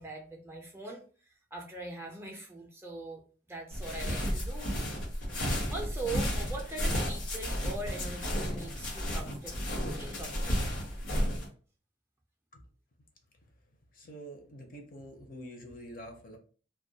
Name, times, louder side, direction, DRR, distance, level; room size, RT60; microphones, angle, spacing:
voice 1, 0.0-4.8 5.7-10.7, right 2 dB, 15° right, 0 dB, 0.3 m, -42 dB
sound 1, 3.7-11.5, equal, 90° left, 1.0 m, -32 dB
voice 2, 13.9-16.4, equal, 45° left, 3 dB, 0.5 m, -46 dB
2.2 x 2.1 x 2.6 m, 0.39 s
head